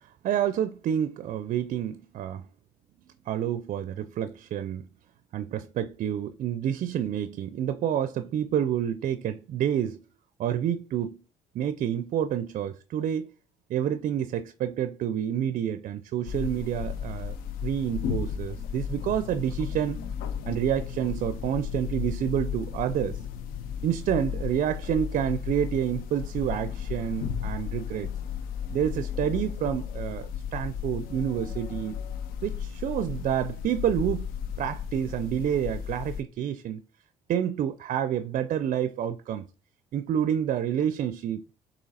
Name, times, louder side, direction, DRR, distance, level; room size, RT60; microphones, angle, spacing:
voice 1, 0.2-2.5 3.3-4.9 5.3-10.0 10.4-11.2 11.5-13.3 13.7-17.4 17.6-20.0 20.5-23.2 23.8-28.1 28.7-32.0 32.4-34.3 34.6-36.8 37.3-39.4 39.9-41.4, right 9 dB, 50° right, 0.4 m, -28 dB
sound 1, 16.2-36.2, left 8 dB, 70° left, 0.5 m, -34 dB
6.6 x 2.9 x 2.7 m
hypercardioid pair, 55°, 16 cm